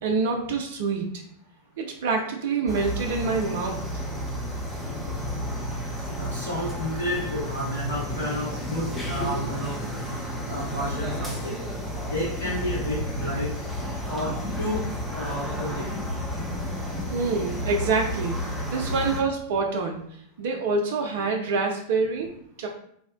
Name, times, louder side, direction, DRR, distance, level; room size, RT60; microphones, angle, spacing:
voice 1, 0.0-1.1 1.8-3.8 17.1-18.4 18.7-20.0 20.4-22.7, right 4 dB, 55° right, 2 dB, 0.3 m, -26 dB
sound 1, 2.7-19.2, equal, 5° left, 0.5 m, -32 dB
voice 2, 6.2-9.7 10.5-11.6 12.1-13.5 14.1-15.9 18.8-18.9, equal, 65° left, -8 dB, 1.4 m, -31 dB
2.6 x 2.1 x 2.3 m, 0.66 s
figure-of-eight pair, 90°, 0 cm